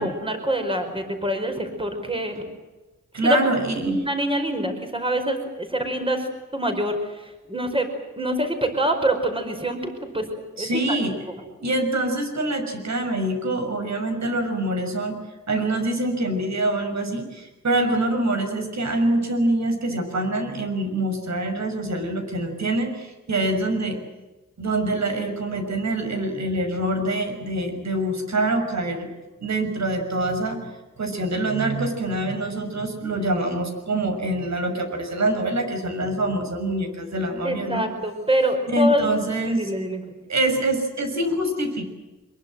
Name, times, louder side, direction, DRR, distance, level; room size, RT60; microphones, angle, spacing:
voice 1, 0.0-2.4 3.2-3.4 3.8-6.2 6.5-7.0 7.5-7.9 8.2-9.8 10.1-10.3 10.6-11.0 11.3-11.4 37.4-39.1 39.4-40.0, equal, 15° right, 5 dB, 5.0 m, -25 dB
voice 2, 3.1-4.0 10.6-11.1 11.6-15.2 15.5-24.0 24.6-29.1 29.4-30.7 31.0-37.8 38.7-39.7 40.3-41.9, right 1 dB, 65° right, 5 dB, 6.3 m, -25 dB
24.5 x 22.5 x 7.7 m, 1.1 s
wide cardioid pair, 130°, 30 cm